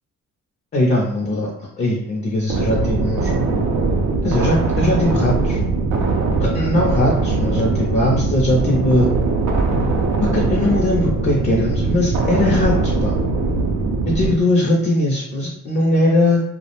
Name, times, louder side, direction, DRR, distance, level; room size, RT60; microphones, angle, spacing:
voice 1, 0.7-1.5 1.8-3.3 4.2-5.6 6.4-9.1 10.2-13.2 14.1-16.4, left 1 dB, 35° left, -2 dB, 0.5 m, -19 dB
sound 1, 2.5-14.4, right 3 dB, 70° right, 0.5 m, -20 dB
2.3 x 2.0 x 2.9 m, 0.77 s
cardioid pair, 90°, 30 cm